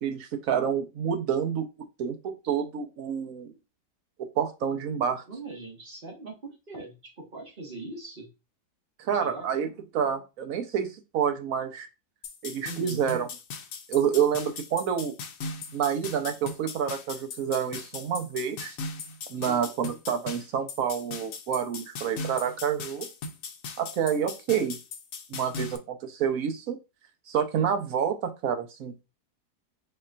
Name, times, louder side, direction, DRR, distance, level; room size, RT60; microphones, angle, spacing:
voice 1, 0.0-1.6 2.0-3.5 4.4-5.2 9.0-9.7 9.9-11.9 12.4-13.3 13.9-15.1 15.7-18.8 19.3-23.1 23.8-24.8 25.3-26.8 27.3-29.0, right 8 dB, 60° right, 6 dB, 1.1 m, -28 dB
voice 2, 5.3-8.3 9.2-9.8 12.6-13.0 19.4-19.8, right 2 dB, 35° right, -1 dB, 1.6 m, -41 dB
sound 1, 12.2-25.8, left 4 dB, 65° left, 1.0 m, -39 dB
4.4 x 4.2 x 2.5 m, 0.27 s
omnidirectional pair, 1.8 m